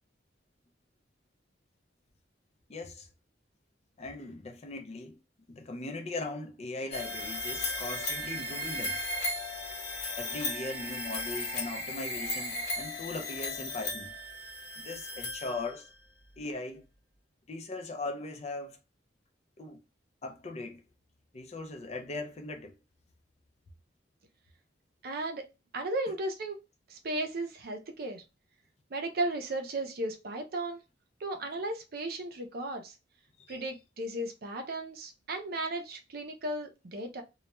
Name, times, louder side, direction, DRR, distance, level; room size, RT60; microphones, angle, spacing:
voice 1, 2.7-3.1 4.0-5.2 5.5-9.0 10.1-14.2 14.8-15.9 16.4-16.8 17.5-18.8 19.6-19.8 20.2-20.8 21.3-22.7 26.1-26.2 33.5-33.6, left 2 dB, 35° left, 0.4 m, -39 dB
sound 1, 6.9-16.0, left 1 dB, 65° left, 0.8 m, -36 dB
voice 2, 25.0-25.4 25.7-26.6 26.9-28.2 28.9-30.8 31.2-32.9 33.5-37.2, right 2 dB, 55° right, 0.5 m, -35 dB
2.3 x 2.1 x 2.9 m
head